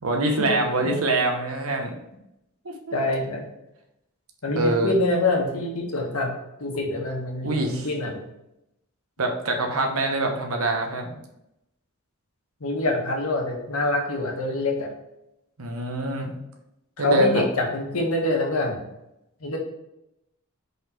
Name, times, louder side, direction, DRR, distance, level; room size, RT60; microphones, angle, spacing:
voice 1, 0.0-2.0 2.6-3.0 4.6-4.9 7.4-7.9 9.2-11.1 15.6-16.4 17.0-17.5, right 2 dB, 80° right, 3 dB, 1.0 m, -24 dB
voice 2, 2.9-3.5 4.4-6.3 6.6-8.2 12.6-14.9 17.0-18.8 19.4-19.6, left 2 dB, 85° left, 0 dB, 1.5 m, -25 dB
5.4 x 4.2 x 4.5 m, 0.86 s
head